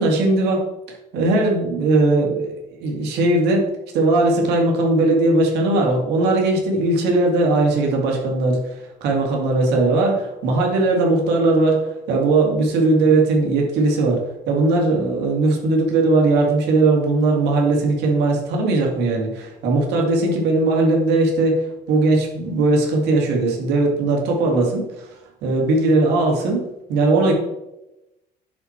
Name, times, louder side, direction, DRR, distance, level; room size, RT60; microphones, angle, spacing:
voice 1, 0.0-3.7 3.9-25.1 25.4-26.6 26.9-27.3, right 2 dB, 80° right, 0 dB, 2.2 m, -19 dB
9.9 x 4.4 x 4.4 m, 0.94 s
cardioid pair, 110°, 17 cm